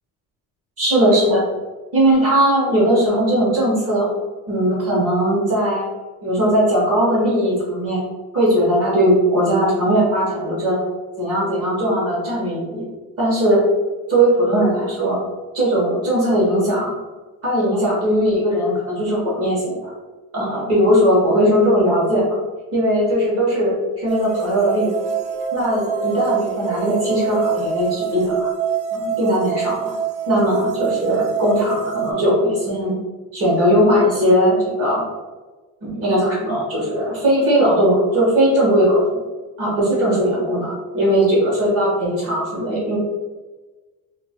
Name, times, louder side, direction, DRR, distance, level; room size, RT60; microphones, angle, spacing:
voice 1, 0.8-1.4 1.9-4.1 4.5-5.9 6.2-8.0 8.3-10.8 11.2-12.8 13.2-13.6 14.1-15.2 15.5-16.9 17.4-19.9 20.3-22.3 22.7-24.9 25.5-28.5 28.9-29.9 30.3-32.9 33.3-35.0 35.8-39.0 39.6-43.0, equal, 40° right, -5 dB, 1.2 m, -18 dB
sound 1, 24.1-32.1, right 8 dB, 60° right, 0.5 m, -25 dB
sound 2, 24.2-28.9, right 1 dB, 25° left, 0.6 m, -36 dB
2.9 x 2.5 x 3.5 m, 1.2 s
cardioid pair, 170°, 36 cm